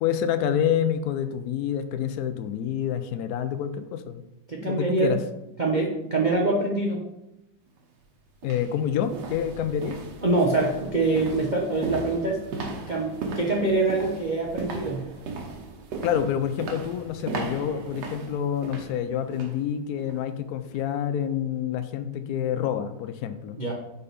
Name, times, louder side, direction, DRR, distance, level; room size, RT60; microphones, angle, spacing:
voice 1, 0.0-4.2 4.6-5.2 8.4-10.0 16.0-23.6, left 9 dB, 85° left, 9 dB, 0.8 m, -27 dB
voice 2, 4.5-5.2 5.6-7.0 10.2-12.4 12.9-15.1 23.6-23.7, right 2 dB, 80° right, -2 dB, 0.4 m, -24 dB
sound 1, 7.7-7.8 8.4-19.6 20.0-20.2 20.7-20.8, right 4 dB, 65° right, 1.5 m, -37 dB
5.4 x 4.5 x 5.0 m, 0.88 s
omnidirectional pair, 2.2 m